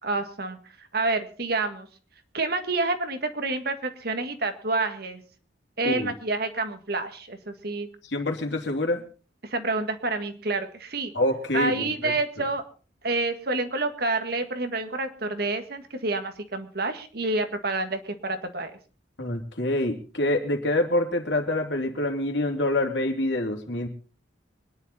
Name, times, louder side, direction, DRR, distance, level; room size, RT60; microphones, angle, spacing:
voice 1, 0.0-1.9 2.3-5.2 5.8-7.9 9.4-11.1 11.5-12.6 13.0-18.8, right 3 dB, 55° right, 7 dB, 1.8 m, -28 dB
voice 2, 5.8-6.1 8.1-9.0 11.1-12.1 19.2-23.9, left 1 dB, 70° left, 3 dB, 2.9 m, -26 dB
24.5 x 10.5 x 4.2 m, 0.37 s
head